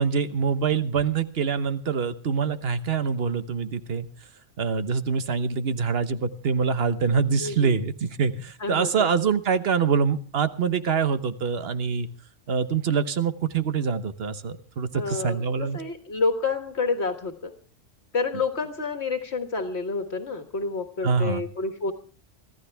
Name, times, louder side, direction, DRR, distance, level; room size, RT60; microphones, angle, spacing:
voice 1, 0.0-4.1 4.6-12.1 12.5-15.8 21.0-21.4, right 6 dB, 55° right, 12 dB, 1.2 m, -25 dB
voice 2, 7.4-7.8 8.6-9.1 14.9-17.5 18.1-21.9, left 4 dB, 65° left, 7 dB, 1.7 m, -29 dB
25.0 x 14.0 x 3.4 m, 0.40 s
omnidirectional pair, 1.2 m